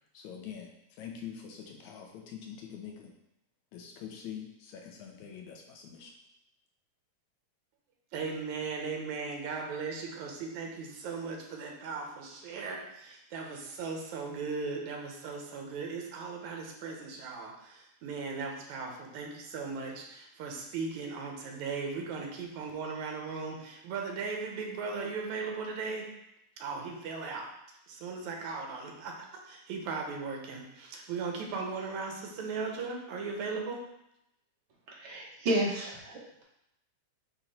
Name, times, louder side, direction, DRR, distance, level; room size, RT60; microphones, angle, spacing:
voice 1, 0.1-0.7 1.0-3.1 3.7-6.1, left 8 dB, 80° left, 1 dB, 2.2 m, -44 dB
voice 2, 8.1-26.1 26.6-27.5 27.9-29.1 29.4-33.8, right 4 dB, 80° right, 1 dB, 2.3 m, -37 dB
voice 3, 34.9-36.4, right 1 dB, 50° right, -4 dB, 1.9 m, -32 dB
8.5 x 3.1 x 4.2 m, 0.82 s
omnidirectional pair, 3.3 m